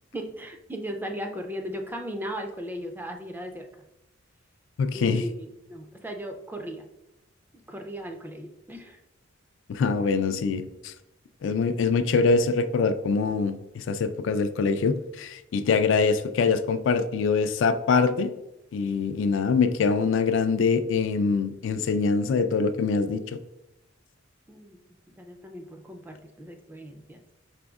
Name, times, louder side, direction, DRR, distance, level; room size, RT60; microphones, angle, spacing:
voice 1, 0.1-3.7 4.9-6.9 7.7-9.0 24.5-24.8 25.2-27.2, equal, 10° right, 3 dB, 0.4 m, -37 dB
voice 2, 4.8-5.2 9.7-10.9 11.4-18.3 18.7-23.4, left 4 dB, 70° left, 10 dB, 0.3 m, -24 dB
5.0 x 3.5 x 2.3 m, 0.93 s
head